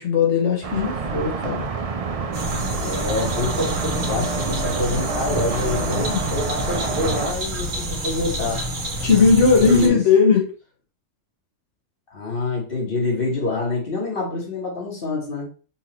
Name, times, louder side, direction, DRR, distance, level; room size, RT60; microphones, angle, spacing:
voice 1, 0.0-1.7 5.8-6.2 9.0-10.5, left 5 dB, 65° left, 1.5 m, -18 dB
sound 1, 0.6-7.3, right 5 dB, 55° right, 0.4 m, -27 dB
sound 2, 2.3-9.9, equal, 75° right, 1.6 m, -28 dB
voice 2, 2.8-8.6 9.6-10.0 12.1-15.5, left 3 dB, 45° left, 1.7 m, -26 dB
5.8 x 2.8 x 3.0 m
omnidirectional pair, 1.3 m